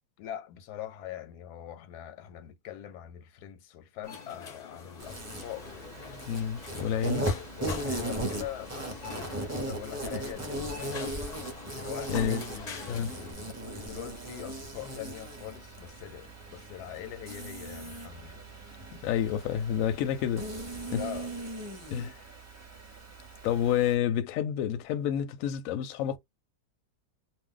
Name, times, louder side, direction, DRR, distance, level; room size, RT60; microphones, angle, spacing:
voice 1, 0.2-6.3 6.7-11.2 11.7-18.5 21.0-21.3 21.9-22.3, left 11 dB, 85° left, 1.1 m, -43 dB
sound 1, 4.0-13.3, left 5 dB, 50° left, 0.5 m, -44 dB
Insect, 5.0-23.9, right 1 dB, 15° right, 0.5 m, -38 dB
voice 2, 6.3-7.3 12.1-12.4 12.9-13.1 19.0-20.5 20.9-21.0 21.9-22.1 23.4-26.2, left 10 dB, 70° left, 0.9 m, -29 dB
2.5 x 2.1 x 3.6 m
omnidirectional pair, 1.7 m